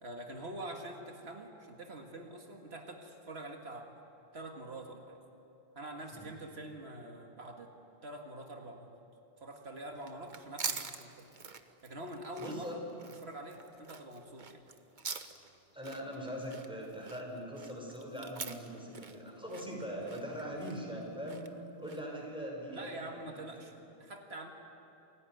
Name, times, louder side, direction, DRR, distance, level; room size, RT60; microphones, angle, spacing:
voice 1, 0.0-3.9 4.3-5.2 5.8-7.7 8.0-9.0 9.4-11.3 11.8-12.8 13.2-14.6 22.7-24.5, right 1 dB, 85° right, 2 dB, 2.2 m, -45 dB
sound 1, 9.9-22.2, right 5 dB, 50° right, 1.2 m, -45 dB
voice 2, 12.4-12.8 15.7-21.5 21.8-23.4, equal, 5° right, -1 dB, 5.7 m, -41 dB
27.5 x 16.5 x 9.4 m, 3.0 s
omnidirectional pair, 1.0 m